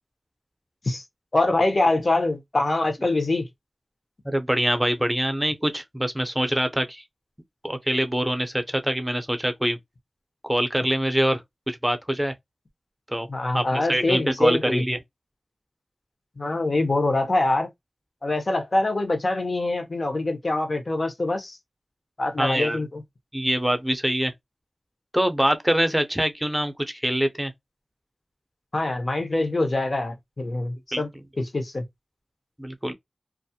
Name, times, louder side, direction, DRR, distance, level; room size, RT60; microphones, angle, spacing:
voice 1, 1.3-3.5 13.3-14.8 16.4-17.7 18.2-21.6 22.2-23.0 28.7-31.1 31.4-31.8, left 2 dB, 65° left, 0.7 m, -24 dB
voice 2, 4.2-7.0 7.6-9.8 10.4-11.4 11.7-12.3 13.1-13.3 13.5-15.0 22.4-22.8 23.3-24.3 25.1-27.5 30.9-31.0 32.6-32.9, equal, 10° right, 0.5 m, -24 dB
2.3 x 2.0 x 2.7 m
wide cardioid pair, 45°, 0 cm